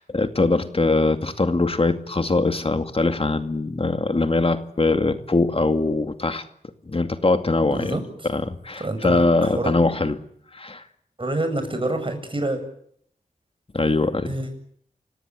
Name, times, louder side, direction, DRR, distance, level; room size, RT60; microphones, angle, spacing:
voice 1, 0.0-6.4 6.9-8.0 8.2-10.2 10.5-10.8 13.7-14.3, left 3 dB, 40° left, 8 dB, 2.2 m, -22 dB
voice 2, 7.7-8.0 8.8-9.7 11.2-12.6 14.3-14.5, right 2 dB, 35° right, 7 dB, 7.8 m, -27 dB
29.5 x 17.5 x 9.5 m, 0.68 s
wide cardioid pair, 60°, 15 cm